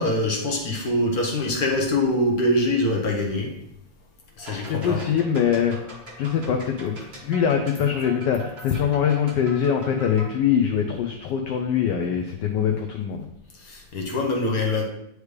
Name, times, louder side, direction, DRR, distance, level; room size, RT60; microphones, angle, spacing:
voice 1, 0.0-3.5 4.4-5.0 13.5-14.8, left 1 dB, 55° left, 0 dB, 1.4 m, -24 dB
sound 1, 4.4-10.3, right 1 dB, 35° right, 1.3 m, -42 dB
voice 2, 4.7-5.8 6.2-13.3, left 8 dB, 70° left, 3 dB, 1.2 m, -23 dB
9.5 x 3.2 x 3.2 m, 0.78 s
omnidirectional pair, 2.1 m